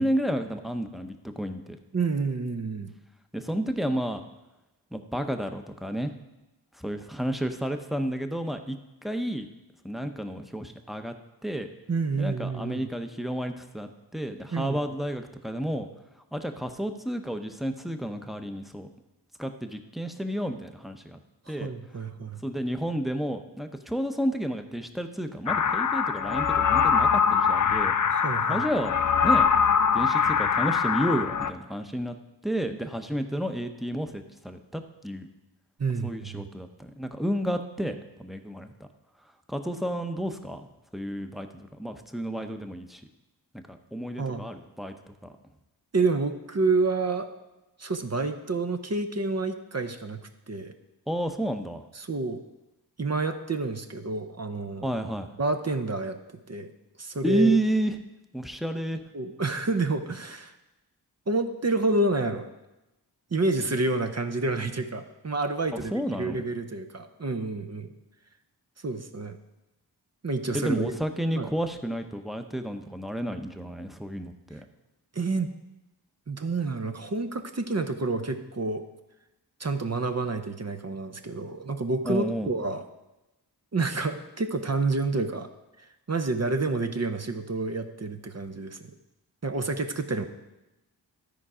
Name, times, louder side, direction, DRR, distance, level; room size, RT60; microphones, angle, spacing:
voice 1, 0.0-1.8 3.3-4.2 4.9-6.1 6.8-9.5 9.8-11.1 11.4-11.7 12.2-15.9 16.3-18.9 19.4-21.2 21.5-21.7 22.4-27.9 28.5-29.0 29.2-29.5 29.9-32.1 32.4-35.3 36.0-38.9 39.5-40.7 40.9-43.0 43.7-45.3 51.1-51.8 54.8-55.3 57.2-58.0 58.3-59.0 65.9-66.4 70.5-74.6 82.0-82.5, right 1 dB, ahead, 6 dB, 0.8 m, -31 dB
voice 2, 1.9-2.9 11.9-12.9 14.5-14.8 21.5-22.4 28.1-28.7 35.8-36.5 44.2-44.4 45.9-47.3 47.8-50.7 52.0-52.4 53.0-54.9 55.4-56.2 56.5-56.7 57.0-57.6 59.1-60.6 61.3-62.5 63.3-65.9 66.2-67.9 68.8-69.4 70.2-70.9 71.4-71.5 75.1-75.5 76.3-78.8 79.6-82.8 83.7-85.5 86.1-88.9 89.4-90.2, right 3 dB, 40° right, 7 dB, 0.7 m, -29 dB
sound 1, 25.5-31.5, left 6 dB, 50° left, 0.5 m, -23 dB
12.5 x 4.6 x 4.9 m, 0.99 s
cardioid pair, 45°, 41 cm